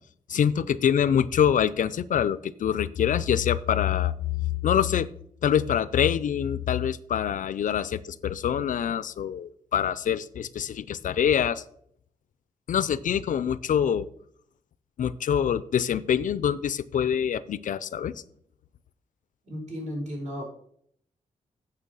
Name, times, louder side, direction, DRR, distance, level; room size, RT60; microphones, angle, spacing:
voice 1, 0.3-5.1 5.4-11.6 12.7-14.1 15.0-18.1, left 9 dB, 70° left, 17 dB, 0.5 m, -25 dB
voice 2, 19.4-20.4, equal, 55° right, -1 dB, 4.6 m, -34 dB
9.0 x 6.3 x 5.4 m, 0.66 s
wide cardioid pair, 120°, 14 cm